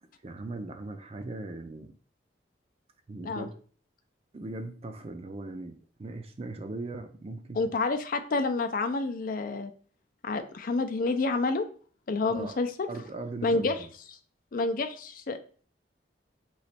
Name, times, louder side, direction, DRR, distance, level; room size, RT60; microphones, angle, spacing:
voice 1, 0.0-1.9 3.1-3.5 4.3-7.6 12.3-12.6 12.9-13.9, right 2 dB, 35° right, 7 dB, 0.4 m, -39 dB
voice 2, 7.6-9.7 10.2-11.6 12.1-12.9 13.4-13.7 14.5-15.4, left 3 dB, 50° left, 8 dB, 0.4 m, -28 dB
3.1 x 2.9 x 4.2 m, 0.43 s
head